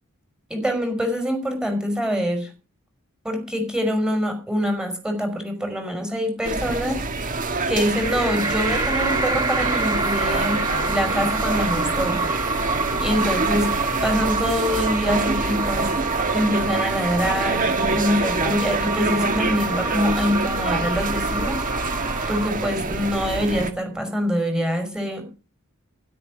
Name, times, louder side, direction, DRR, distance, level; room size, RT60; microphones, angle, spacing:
voice 1, 0.5-2.5 3.2-7.3 7.7-12.3 13.0-13.7 14.0-15.9 16.3-21.6 22.3-25.3, equal, 5° right, 6 dB, 5.5 m, -25 dB
sound 1, 6.4-23.7, right 3 dB, 40° right, 1.8 m, -26 dB
sound 2, 8.0-22.5, right 3 dB, 20° right, 1.8 m, -28 dB
12.5 x 12.0 x 6.4 m, 0.33 s
head